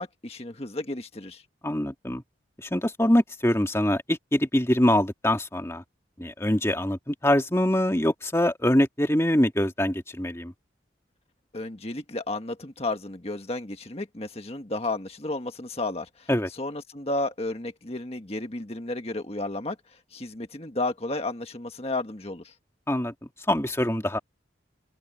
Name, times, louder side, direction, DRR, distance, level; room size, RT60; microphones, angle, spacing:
voice 1, 0.0-1.4 11.5-19.8 20.1-22.5, left 2 dB, 35° left, 1.6 m, -32 dB
voice 2, 1.6-2.2 2.6-5.8 6.2-10.5 16.3-16.5 22.9-23.1 23.5-24.2, left 1 dB, 15° left, 2.0 m, -24 dB
open air
head